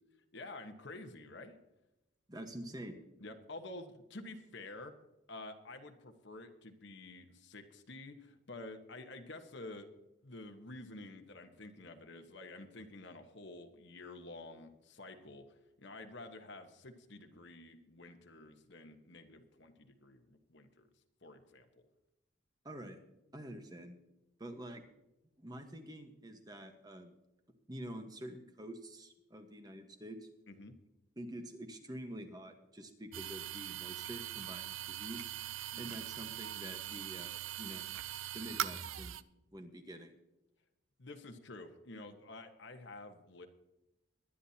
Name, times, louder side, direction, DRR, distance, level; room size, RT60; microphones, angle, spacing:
voice 1, 0.3-1.6 3.2-4.9 5.3-9.9 10.2-20.9 21.2-21.8 30.5-30.8 35.7-36.0 41.0-43.5, left 2 dB, 60° left, 6 dB, 1.3 m, -50 dB
voice 2, 2.3-3.0 22.6-23.0 23.3-24.0 24.4-24.8 25.4-27.1 27.7-30.2 31.2-35.2 35.8-37.9 38.3-39.2 39.5-40.1, right 1 dB, 20° right, 6 dB, 1.3 m, -47 dB
sound 1, 33.1-39.2, right 11 dB, 80° right, 0.5 m, -41 dB
22.0 x 10.0 x 2.9 m, 0.94 s
head